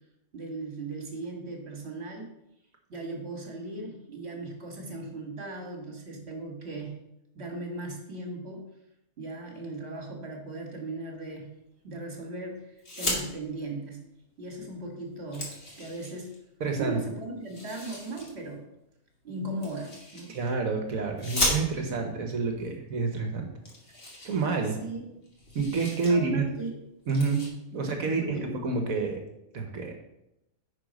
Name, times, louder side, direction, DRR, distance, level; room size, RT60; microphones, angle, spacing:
voice 1, 0.3-2.3 2.9-7.0 7.3-8.7 9.2-11.5 11.8-14.0 14.4-15.5 15.8-16.4 16.8-18.6 19.2-20.4 24.6-25.1 26.1-26.7 27.7-28.5, right 2 dB, 45° right, 2 dB, 1.9 m, -38 dB
sound 1, 12.8-13.2 14.5-14.6 15.0-16.4 17.4-18.3 19.6-20.5 21.2-22.0 22.9-23.0 23.2-23.3 23.6-25.0 25.2-26.1 26.5-26.7 27.0-27.5, left 1 dB, 40° left, 2.1 m, -34 dB
voice 2, 16.6-17.0 20.3-23.5 24.2-24.8 25.5-26.5 27.1-27.4 27.7-29.2 29.5-29.9, right 4 dB, 65° right, 3 dB, 1.4 m, -28 dB
9.7 x 4.5 x 5.2 m, 0.85 s
omnidirectional pair, 1.6 m